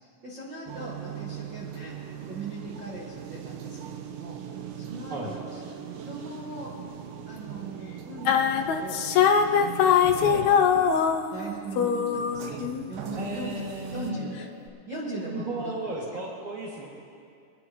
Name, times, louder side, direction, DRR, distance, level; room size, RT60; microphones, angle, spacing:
voice 1, 0.2-4.4 4.8-6.8 7.3-9.1 9.8-10.6 11.3-12.6 12.9-14.5 14.9-15.7 16.1-16.2, right 2 dB, 45° right, -7 dB, 1.8 m, -39 dB
sound 1, 0.7-14.1, right 9 dB, 90° right, 2.5 m, -40 dB
sound 2, 8.3-11.5 11.8-12.9, left 7 dB, 80° left, 1.6 m, -22 dB
voice 2, 13.1-14.3 15.3-16.9, right 1 dB, 15° right, -4 dB, 1.6 m, -34 dB
24.5 x 9.9 x 3.1 m, 2.4 s
omnidirectional pair, 3.9 m